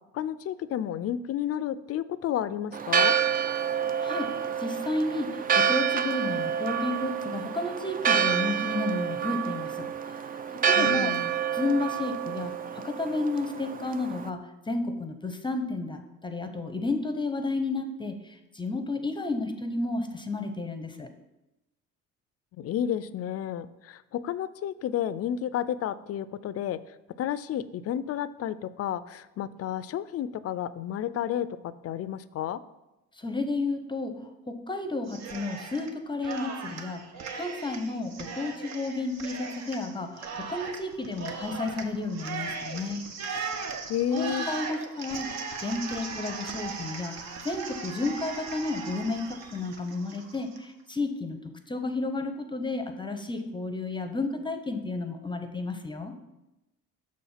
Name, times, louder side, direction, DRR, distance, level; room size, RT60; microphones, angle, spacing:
voice 1, 0.1-3.1 10.8-11.3 22.6-32.6 43.9-44.5, left 10 dB, 50° left, 16 dB, 0.4 m, -31 dB
Church bell, 2.7-14.3, right 8 dB, 30° right, 0.4 m, -28 dB
voice 2, 4.0-10.2 10.5-11.1 11.5-21.1 33.2-43.1 44.1-45.3 45.6-56.1, left 2 dB, 15° left, 8 dB, 0.7 m, -32 dB
Cheering, 35.1-35.9 36.2-50.6, right 5 dB, 55° right, 0.9 m, -38 dB
6.3 x 4.2 x 5.6 m, 0.95 s
supercardioid pair, 80°, 31 cm